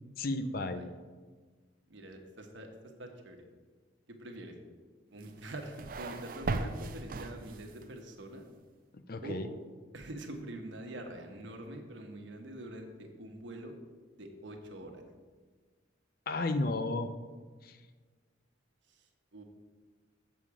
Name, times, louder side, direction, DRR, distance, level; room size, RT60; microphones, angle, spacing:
voice 1, 0.2-0.9 8.9-9.5 16.3-17.1 17.6-17.8, left 2 dB, 50° left, 9 dB, 0.6 m, -33 dB
voice 2, 1.9-2.7 3.0-3.4 4.1-4.5 5.1-8.5 9.2-9.4 9.9-13.8 14.1-15.0 18.9-19.1 19.3-19.4, right 1 dB, 75° right, 3 dB, 1.2 m, -45 dB
sound 1, 5.2-7.9, right 3 dB, 45° right, 0.4 m, -38 dB
7.4 x 7.2 x 4.9 m, 1.4 s
head